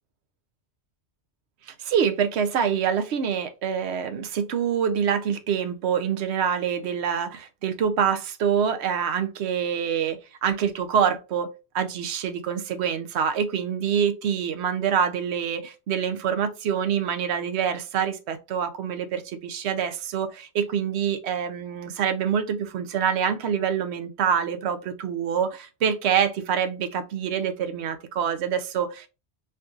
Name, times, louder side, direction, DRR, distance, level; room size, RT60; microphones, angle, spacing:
voice 1, 1.8-11.5 11.7-29.1, right 7 dB, 80° right, 0.9 m, -26 dB
4.4 x 2.5 x 2.4 m
omnidirectional pair, 1.1 m